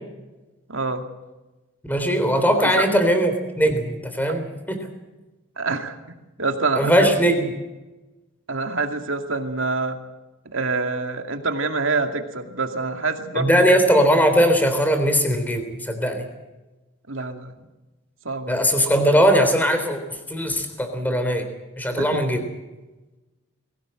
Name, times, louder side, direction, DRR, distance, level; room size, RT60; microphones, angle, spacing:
voice 1, 0.7-1.0 2.7-2.9 5.6-6.0 6.4-7.1 8.5-10.0 10.5-13.7 17.1-17.5 18.2-18.6 22.0-22.2, right 3 dB, 65° right, 5 dB, 2.4 m, -26 dB
voice 2, 1.9-4.8 6.8-7.5 13.3-16.3 18.5-21.5 21.8-22.4, equal, 10° left, 7 dB, 3.5 m, -20 dB
22.0 x 17.0 x 7.8 m, 1.1 s
head